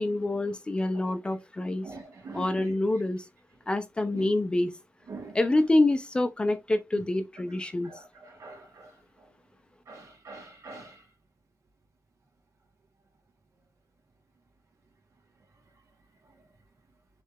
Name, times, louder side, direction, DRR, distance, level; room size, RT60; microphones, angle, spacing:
voice 1, 0.0-1.9 2.3-3.2 3.7-4.7 5.3-7.9, left 2 dB, 20° left, 0.8 m, -26 dB
voice 2, 1.8-2.6 5.1-5.3 8.4-8.9 9.9-10.9, right 3 dB, 70° right, 2.6 m, -43 dB
7.4 x 3.5 x 3.6 m
wide cardioid pair, 170°, 5 cm